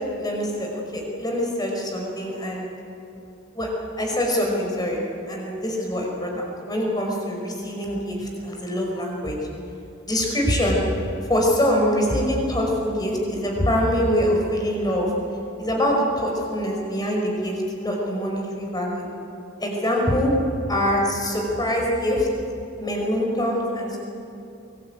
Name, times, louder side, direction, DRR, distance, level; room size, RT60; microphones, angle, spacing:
voice 1, 0.2-2.7 3.5-3.7 4.0-5.0 5.3-9.4 10.0-10.8 11.3-15.1 15.6-19.1 19.6-20.3 20.7-22.3 22.8-24.0, equal, 20° left, -1 dB, 5.1 m, -24 dB
23.5 x 19.0 x 8.9 m, 2.9 s
head